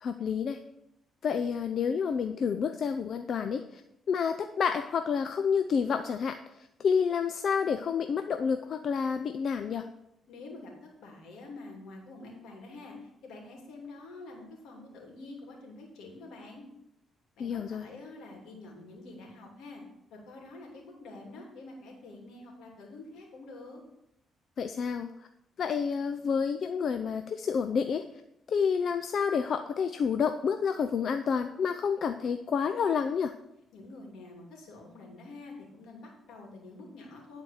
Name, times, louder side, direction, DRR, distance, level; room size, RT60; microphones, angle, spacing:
voice 1, 0.0-0.6 1.2-3.8 4.1-9.9 17.4-17.9 24.6-25.1 25.6-28.0 28.5-33.3, left 6 dB, 55° left, 7 dB, 0.5 m, -29 dB
voice 2, 10.3-16.6 17.4-19.8 20.1-23.8 33.7-37.4, left 2 dB, 80° left, 0 dB, 2.8 m, -47 dB
10.5 x 4.5 x 6.5 m, 0.83 s
cardioid pair, 90°, 0 cm